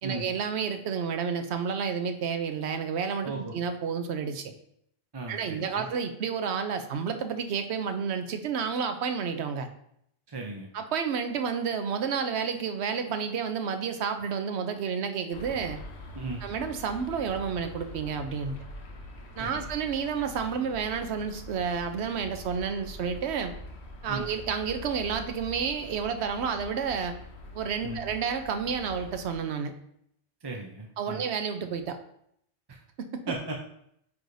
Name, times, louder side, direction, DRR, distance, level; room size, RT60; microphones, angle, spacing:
voice 1, 0.0-4.5 5.3-9.7 10.7-15.8 16.4-18.6 19.4-23.5 24.0-27.2 27.5-29.7 31.0-32.0 33.1-33.2, right 6 dB, 75° right, 7 dB, 0.9 m, -30 dB
voice 2, 3.2-3.5 5.1-5.9 10.3-10.7 16.1-16.4 19.4-19.7 24.1-24.3 27.8-28.0 30.4-31.2 32.7-32.8 33.3-33.6, right 3 dB, 30° right, 0 dB, 0.5 m, -36 dB
sound 1, 15.3-29.4, left 2 dB, 70° left, 1.1 m, -44 dB
8.5 x 4.8 x 2.6 m, 0.73 s
omnidirectional pair, 1.1 m